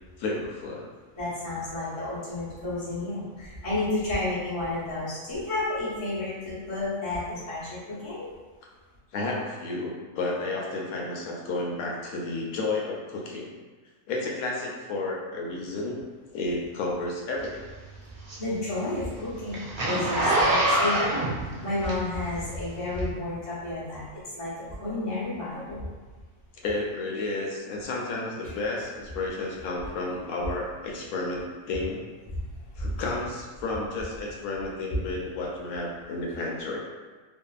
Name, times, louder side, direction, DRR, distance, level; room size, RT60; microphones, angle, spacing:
voice 1, 0.2-0.8 9.1-13.5 14.1-16.0 16.3-17.6 26.6-32.0 32.8-36.8, left 2 dB, 80° left, -2 dB, 1.0 m, -31 dB
voice 2, 1.2-8.3 18.4-25.9 32.3-32.5 32.8-32.9 34.9-35.0, left 2 dB, 30° left, -9 dB, 0.7 m, -31 dB
Zipper (clothing), 17.4-22.4 22.9-23.1, right 1 dB, 60° right, 0.5 m, -25 dB
2.6 x 2.4 x 2.3 m, 1.3 s
omnidirectional pair, 1.5 m